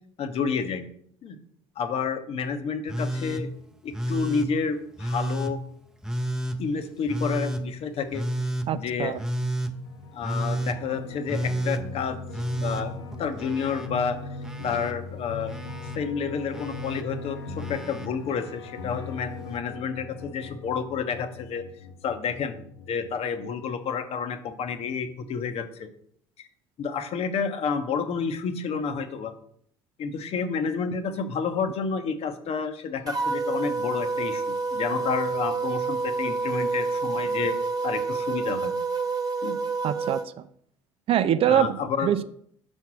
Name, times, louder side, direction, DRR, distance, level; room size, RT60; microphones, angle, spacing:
voice 1, 0.2-0.8 1.2-1.4 1.8-3.5 3.8-5.6 6.6-8.2 8.7-9.2 10.1-12.2 12.6-12.9 13.2-14.2 14.6-15.5 15.9-21.6 22.0-25.9 26.4-26.5 26.8-29.3 30.0-37.6 37.8-38.7 39.4-39.6 41.5-42.1, left 6 dB, 50° left, 8 dB, 1.0 m, -30 dB
Telephone, 2.9-3.4 3.9-4.5 5.0-5.5 6.0-6.6 7.1-7.6 8.1-8.7 9.2-9.7 10.2-10.8 11.3-11.8 12.3-13.9 14.2-14.9 15.5-16.0 16.5-17.0 17.6-18.1 19.3-19.4, right 1 dB, 5° right, 0.8 m, -30 dB
voice 2, 8.7-9.2 39.8-40.5 41.1-42.2, right 10 dB, 45° right, 13 dB, 0.5 m, -24 dB
sound 1, 9.7-23.1, left 3 dB, 90° left, 0.7 m, -40 dB
sound 2, 33.1-40.2, right 4 dB, 30° right, 1.2 m, -28 dB
5.8 x 4.4 x 6.1 m, 0.64 s
hypercardioid pair, 65°, 13 cm